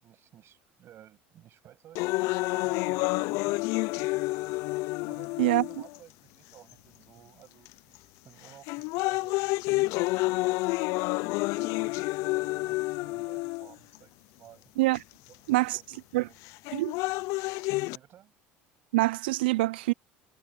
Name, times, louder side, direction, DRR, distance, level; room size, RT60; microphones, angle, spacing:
voice 1, 0.0-2.2 2.4-3.6 5.1-8.0 8.2-10.4 11.5-14.7 15.3-15.9 16.1-16.4 17.9-18.3, right 11 dB, 50° right, 7.2 m, -55 dB
sound 1, 2.0-6.0 6.7-6.8 7.7-8.0 8.4-14.0 14.9-15.0 16.5-18.0, left 23 dB, 70° left, 0.4 m, -29 dB
voice 2, 18.9-19.9, right 20 dB, 90° right, 0.4 m, -25 dB
supercardioid pair, 95°, 5 cm